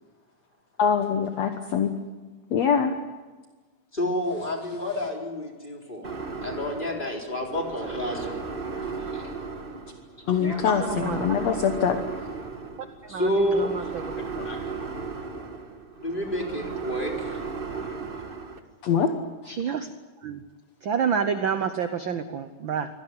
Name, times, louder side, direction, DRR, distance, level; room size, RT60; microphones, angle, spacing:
voice 1, 0.8-1.9 2.5-2.9 8.7-8.8 10.3-12.0 14.4-14.6 18.8-19.1, left 7 dB, 60° left, 6 dB, 2.3 m, -24 dB
voice 2, 3.9-6.1 6.4-8.4 9.1-9.2 13.1-13.7 16.0-17.4, left 1 dB, 15° left, 0 dB, 4.0 m, -29 dB
sound 1, 6.0-18.6, right 4 dB, 30° right, 1.0 m, -36 dB
voice 3, 10.4-11.3 13.1-13.3 13.5-13.8 19.5-19.9 20.2-20.4 20.8-22.9, right 7 dB, 80° right, 9 dB, 1.1 m, -28 dB
25.0 x 18.0 x 9.6 m, 1.3 s
omnidirectional pair, 3.6 m